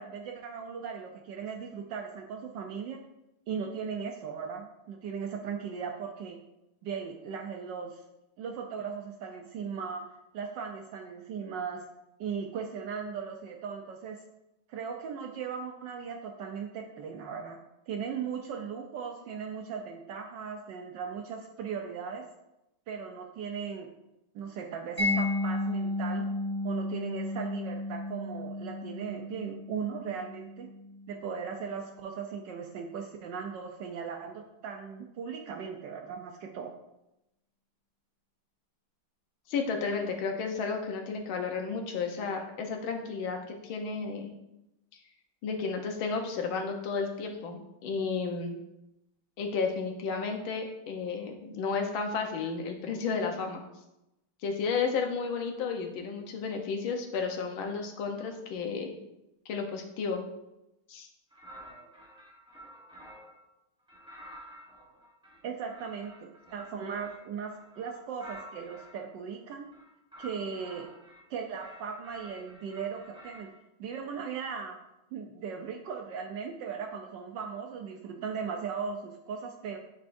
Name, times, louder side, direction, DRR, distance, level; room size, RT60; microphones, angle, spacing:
voice 1, 0.0-3.0 3.5-6.4 6.8-8.0 8.4-10.0 10.3-11.9 12.2-14.2 14.7-17.6 17.9-22.2 22.9-23.9 24.3-26.3 26.6-30.7 31.1-36.7 65.4-69.7 70.2-70.9 71.3-73.5 73.8-74.8 75.1-79.8, right 6 dB, 75° right, 3 dB, 1.1 m, -38 dB
Mallet percussion, 25.0-31.7, left 2 dB, 15° left, 1.3 m, -33 dB
voice 2, 39.5-43.4 43.6-44.3 45.4-48.6 49.4-53.6 54.4-58.9 59.5-60.2 60.9-61.1, left 5 dB, 70° left, 3 dB, 1.6 m, -32 dB
sound 1, 61.3-63.4 63.9-69.0 69.6-71.2 71.6-73.5, equal, 5° right, 0.4 m, -50 dB
9.4 x 4.3 x 2.6 m, 0.91 s
omnidirectional pair, 2.4 m